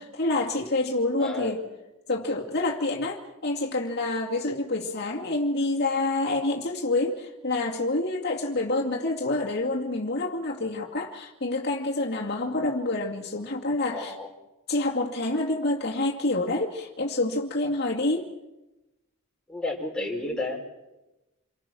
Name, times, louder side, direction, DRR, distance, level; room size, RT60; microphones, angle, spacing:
voice 1, 0.0-1.6 2.1-14.1 14.7-18.3, left 2 dB, 50° left, -1 dB, 2.3 m, -27 dB
voice 2, 1.2-1.6 13.9-14.3 19.5-20.6, left 2 dB, 5° left, -1 dB, 4.8 m, -31 dB
28.5 x 24.5 x 6.2 m, 1.0 s
head